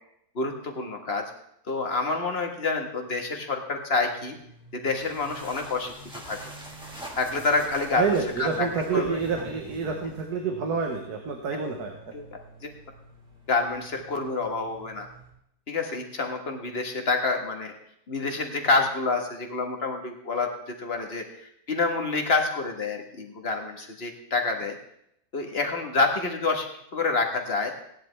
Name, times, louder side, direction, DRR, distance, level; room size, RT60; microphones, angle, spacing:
voice 1, 0.3-1.3 1.7-4.4 4.7-5.9 6.2-6.4 7.2-8.0 8.4-8.7 8.9-9.2 11.5-11.6 12.1-12.7 13.5-15.1 15.7-17.7 18.1-24.7 25.3-26.7 26.9-27.7, left 3 dB, 40° left, 3 dB, 1.7 m, -27 dB
sound 1, 4.0-15.3, right 3 dB, 35° right, 3.0 m, -51 dB
sound 2, 4.8-10.4, right 1 dB, 5° right, 1.6 m, -44 dB
voice 2, 8.0-11.9, right 5 dB, 90° right, 3 dB, 1.7 m, -28 dB
17.0 x 10.0 x 3.4 m, 0.74 s
omnidirectional pair, 1.6 m